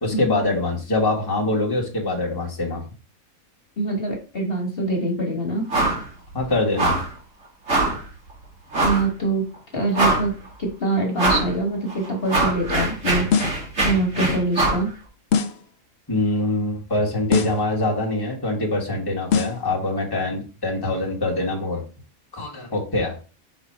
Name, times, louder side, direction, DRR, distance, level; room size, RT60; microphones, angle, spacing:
voice 1, 0.0-2.8 6.3-7.0 16.1-21.8 22.3-23.1, left 2 dB, 15° left, -2 dB, 1.4 m, -24 dB
voice 2, 3.8-5.7 8.8-10.3 10.6-13.5 13.8-14.9, right 2 dB, 45° left, 0 dB, 1.5 m, -24 dB
sound 1, 5.7-6.1 6.3-6.4 6.8-7.1 7.7-8.0 8.7-9.1 9.5-9.6 9.9-10.5 11.2-11.5 11.9-14.9, right 2 dB, 60° right, 2.7 m, -22 dB
sound 2, 13.3-13.7 15.3-15.7 17.3-17.7 19.3-19.7, left 6 dB, 60° left, 0.8 m, -22 dB
5.5 x 4.0 x 4.3 m, 0.36 s
omnidirectional pair, 1.5 m